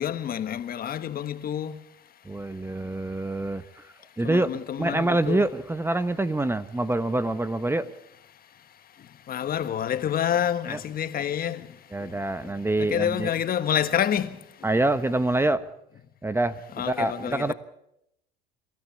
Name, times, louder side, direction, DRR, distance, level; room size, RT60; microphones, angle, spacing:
voice 1, 0.0-1.8 4.2-5.5 9.3-11.7 12.0-12.1 12.4-12.5 12.8-14.4 16.8-17.5, left 9 dB, 45° left, 1.5 m, -28 dB
voice 2, 2.2-3.8 4.2-4.5 4.8-7.9 10.7-10.8 11.9-13.3 14.6-15.6 16.2-16.6 16.8-17.5, right 2 dB, 10° right, 1.0 m, -26 dB
27.0 x 13.5 x 8.5 m
supercardioid pair, 85°, 21 cm